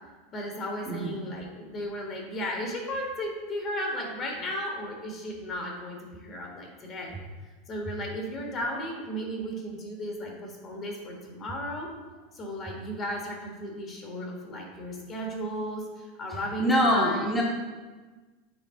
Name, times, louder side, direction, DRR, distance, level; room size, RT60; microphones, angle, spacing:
voice 1, 0.3-7.2 7.7-11.9 12.3-17.4, equal, 35° left, 0 dB, 1.7 m, -35 dB
voice 2, 0.9-1.2 16.3-17.4, equal, 10° left, -5 dB, 1.4 m, -25 dB
7.4 x 4.6 x 3.8 m, 1.3 s
hypercardioid pair, 85°, 0 cm